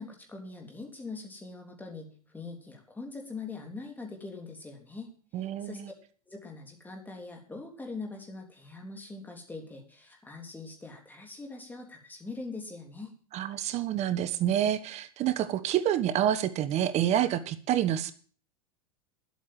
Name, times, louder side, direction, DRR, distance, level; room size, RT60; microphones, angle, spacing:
voice 1, 0.0-5.8 6.3-13.2, left 3 dB, 10° left, 2 dB, 3.4 m, -42 dB
voice 2, 5.3-5.9 13.3-18.1, right 11 dB, 40° right, 13 dB, 1.1 m, -28 dB
11.0 x 8.4 x 7.5 m, 0.43 s
hypercardioid pair, 120°, 18 cm